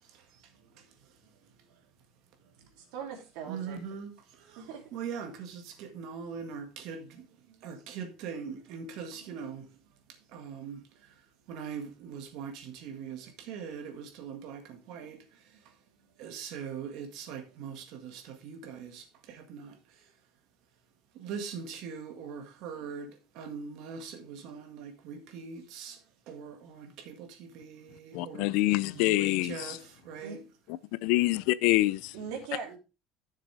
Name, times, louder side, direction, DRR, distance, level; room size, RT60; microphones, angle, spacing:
voice 1, 0.0-1.8 2.6-2.7 3.5-9.7 10.1-15.8 16.2-20.1 21.1-28.6 28.9-30.4, right 6 dB, 55° right, 1.9 m, -42 dB
voice 2, 2.8-3.8 4.6-4.8 30.2-30.4 32.1-32.8, right 6 dB, 75° right, 3.0 m, -40 dB
voice 3, 28.1-29.8 31.0-32.1, left 18 dB, 65° left, 0.5 m, -26 dB
11.0 x 6.6 x 3.4 m
cardioid pair, 180°, 0 cm